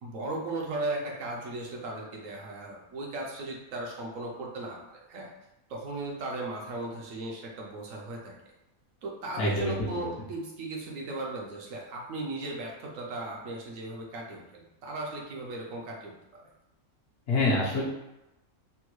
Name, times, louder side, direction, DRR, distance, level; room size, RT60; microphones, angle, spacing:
voice 1, 0.0-5.3 5.7-8.3 9.0-16.4, right 2 dB, 70° right, -1 dB, 1.0 m, -36 dB
voice 2, 9.4-10.1 17.3-17.8, left 2 dB, 60° left, -5 dB, 1.0 m, -26 dB
3.4 x 2.2 x 3.0 m, 0.94 s
omnidirectional pair, 1.5 m